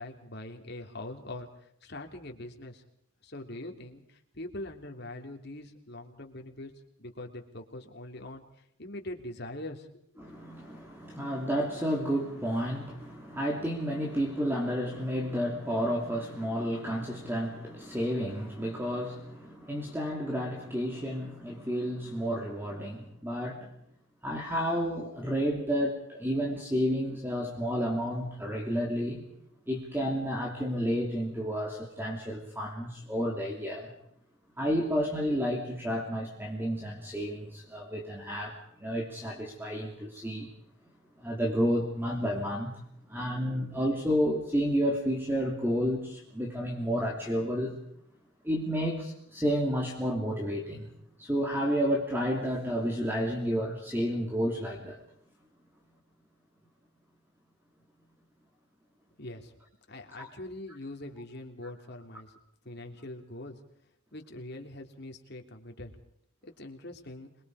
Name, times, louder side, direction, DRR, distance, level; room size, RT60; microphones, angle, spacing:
voice 1, 0.0-1.5 1.8-2.8 3.2-6.7 7.0-8.4 8.8-9.9 59.2-59.5 59.9-62.3 62.6-63.6 64.1-65.9 66.4-67.3, left 1 dB, 55° left, 4 dB, 3.1 m, -42 dB
voice 2, 10.2-23.7 24.2-29.2 29.7-33.9 34.6-38.5 38.8-40.5 41.2-42.7 43.1-47.8 48.4-50.9 51.2-55.0 60.2-60.3, equal, 10° right, 0 dB, 3.0 m, -31 dB
27.0 x 22.5 x 4.9 m, 0.72 s
head